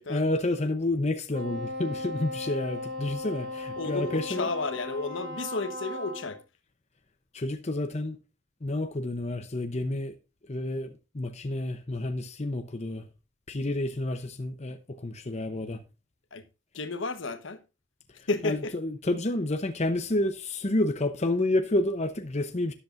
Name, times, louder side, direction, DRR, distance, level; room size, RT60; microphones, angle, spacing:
voice 1, 0.1-4.5 7.3-8.2 8.6-10.2 10.4-13.1 13.5-15.8 18.2-22.7, left 2 dB, 35° left, 0.8 m, -29 dB
Wind instrument woodwind instrument, 1.3-6.4, left 2 dB, 60° right, 4.4 m, -37 dB
voice 2, 3.8-6.4 16.3-16.4 16.7-17.6 18.3-18.7, left 3 dB, 65° left, 1.2 m, -32 dB
13.0 x 10.5 x 2.6 m
head